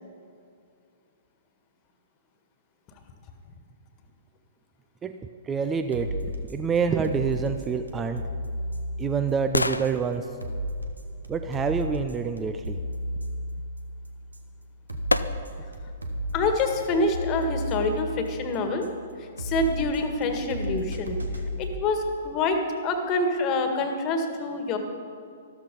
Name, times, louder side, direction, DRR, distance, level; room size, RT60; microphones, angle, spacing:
voice 1, 5.0-8.2 9.0-10.3 11.3-12.8, right 6 dB, 15° right, 8 dB, 0.6 m, -27 dB
sound 1, 5.5-21.7, equal, 80° right, 1.5 m, -34 dB
sound 2, 8.1-12.1 14.2-14.3 15.1-15.8 16.3-16.4, left 2 dB, 85° left, 0.5 m, -33 dB
voice 2, 16.3-18.9 19.4-21.2 21.6-24.8, left 2 dB, 30° left, 6 dB, 1.7 m, -26 dB
13.0 x 13.0 x 5.3 m, 2.4 s
figure-of-eight pair, 115°, 0 cm